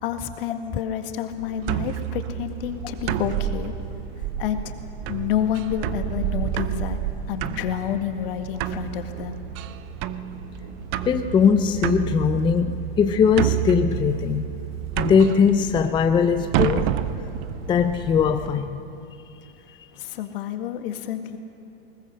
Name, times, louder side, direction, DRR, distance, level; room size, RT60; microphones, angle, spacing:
voice 1, 0.0-3.7 4.4-4.7 5.1-7.0 7.3-9.4 19.9-21.4, left 10 dB, 60° left, 6 dB, 1.9 m, -29 dB
sound 1, 1.3-18.5, right 2 dB, 70° right, 4.0 m, -41 dB
sound 2, 1.6-18.5, right 12 dB, 40° right, 0.7 m, -30 dB
voice 2, 11.0-14.6 15.0-17.0 17.7-18.8, left 6 dB, 15° left, 8 dB, 0.5 m, -20 dB
20.5 x 20.0 x 6.5 m, 2.7 s
hypercardioid pair, 125°, 31 cm